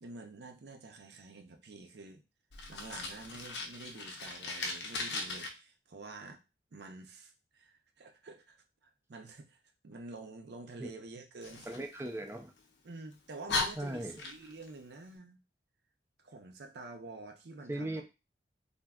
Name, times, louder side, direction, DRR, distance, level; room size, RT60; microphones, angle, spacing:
voice 1, 0.0-2.2 2.7-6.4 6.7-8.6 9.1-9.6 9.8-11.7 12.8-15.4 16.2-18.0, right 3 dB, 70° right, 0.5 m, -48 dB
Fire, 2.5-5.5 11.4-12.6 13.1-13.2 13.5-14.7, left 3 dB, 75° left, 0.6 m, -38 dB
voice 2, 11.7-12.5 13.8-14.1 17.7-18.0, right 1 dB, 15° right, 0.3 m, -38 dB
3.5 x 2.5 x 2.3 m
head